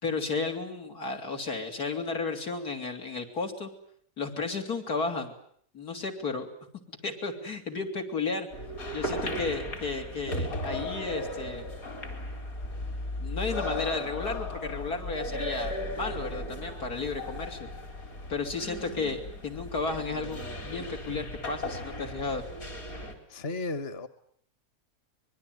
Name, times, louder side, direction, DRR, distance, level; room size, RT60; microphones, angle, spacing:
voice 1, 0.0-3.7 4.2-5.3 5.7-6.5 7.0-8.5 8.9-11.7 13.2-17.7 18.3-22.4, left 4 dB, 85° left, 2 dB, 3.9 m, -33 dB
sound 1, 8.5-23.1, left 1 dB, 65° left, 4.6 m, -36 dB
voice 2, 23.3-24.1, left 2 dB, 45° left, 12 dB, 1.5 m, -34 dB
25.0 x 22.0 x 9.5 m, 0.66 s
omnidirectional pair, 1.6 m